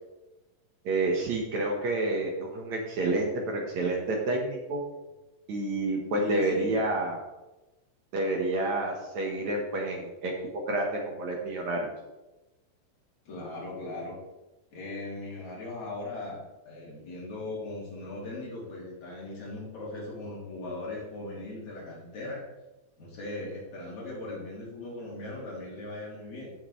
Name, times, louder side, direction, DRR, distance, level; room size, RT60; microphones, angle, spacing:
voice 1, 0.8-4.8 5.5-7.2 8.1-11.9, right 2 dB, 60° right, 0 dB, 2.4 m, -29 dB
voice 2, 6.2-6.7 9.9-10.0 13.3-14.2 14.7-22.5 23.0-26.5, left 2 dB, 55° left, -5 dB, 4.3 m, -38 dB
15.0 x 7.3 x 3.3 m, 1.0 s
omnidirectional pair, 4.1 m